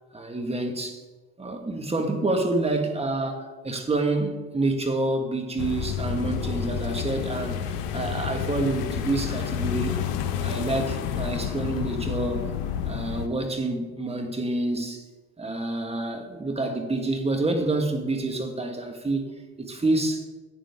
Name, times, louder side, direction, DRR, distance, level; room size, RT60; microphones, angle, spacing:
voice 1, 0.1-1.0 1.4-10.0 10.4-12.4 12.9-15.0 15.4-19.3 19.6-20.3, right 2 dB, 20° right, 4 dB, 1.8 m, -28 dB
sound 1, 5.6-13.3, left 8 dB, 75° left, 1.0 m, -29 dB
11.0 x 8.7 x 3.7 m, 1.2 s
hypercardioid pair, 75°, 32 cm